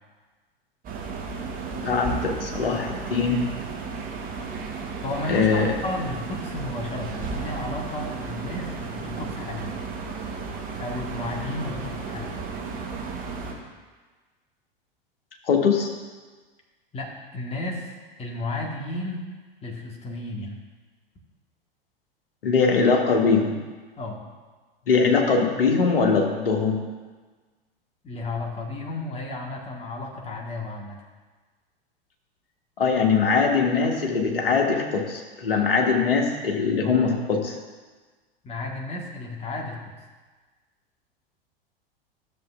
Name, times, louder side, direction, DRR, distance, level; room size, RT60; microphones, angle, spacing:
sound 1, 0.8-13.5, right 5 dB, 30° right, 1.3 m, -34 dB
voice 1, 1.7-3.4 5.3-5.7 15.5-15.9 22.4-23.5 24.9-26.8 32.8-37.6, left 5 dB, 70° left, 1 dB, 1.4 m, -22 dB
voice 2, 5.0-9.7 10.8-12.4 16.9-17.9 18.2-19.3 19.6-20.6 24.0-24.2 28.0-31.0 38.4-39.8, left 2 dB, 20° left, 0 dB, 1.4 m, -33 dB
12.5 x 7.1 x 2.4 m, 1.4 s
figure-of-eight pair, 85°, 30 cm